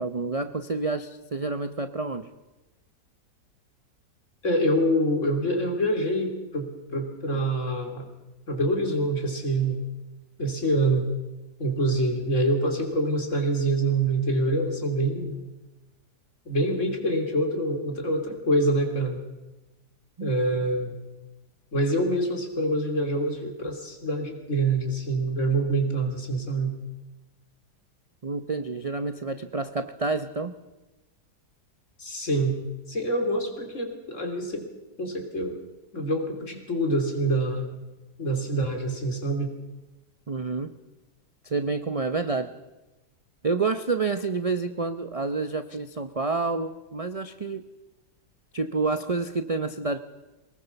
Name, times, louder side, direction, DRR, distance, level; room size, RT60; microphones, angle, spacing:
voice 1, 0.0-2.3 20.2-20.3 28.2-30.5 40.3-40.7 41.4-42.5 43.4-47.6 48.5-50.0, right 3 dB, 40° right, 9 dB, 0.5 m, -28 dB
voice 2, 4.4-8.1 8.5-9.8 10.4-11.1 11.6-15.4 16.5-19.2 20.2-21.0 21.7-26.7 32.0-32.6 32.9-34.7 35.0-35.6 35.9-37.8 38.2-39.5, right 1 dB, 45° left, 4 dB, 3.5 m, -26 dB
23.5 x 19.5 x 7.0 m, 1.1 s
omnidirectional pair, 1.8 m